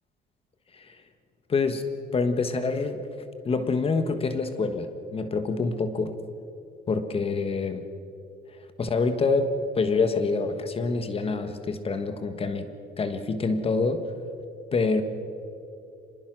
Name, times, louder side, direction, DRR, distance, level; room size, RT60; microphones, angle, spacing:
voice 1, 1.5-1.9 2.1-3.0 3.4-6.1 6.9-7.8 8.8-14.1 14.7-15.0, left 4 dB, 35° left, 9 dB, 1.5 m, -26 dB
25.5 x 20.5 x 6.3 m, 2.7 s
cardioid pair, 110°, 17 cm